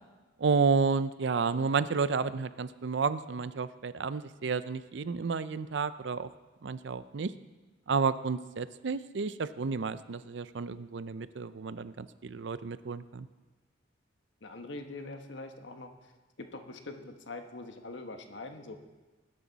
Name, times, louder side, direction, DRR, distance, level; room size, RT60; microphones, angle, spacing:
voice 1, 0.4-6.3 6.6-7.3 7.9-13.3, right 5 dB, 70° right, 14 dB, 0.5 m, -31 dB
voice 2, 14.4-16.1 16.4-18.8, left 2 dB, 75° left, 6 dB, 1.2 m, -43 dB
19.5 x 10.0 x 4.1 m, 1.2 s
head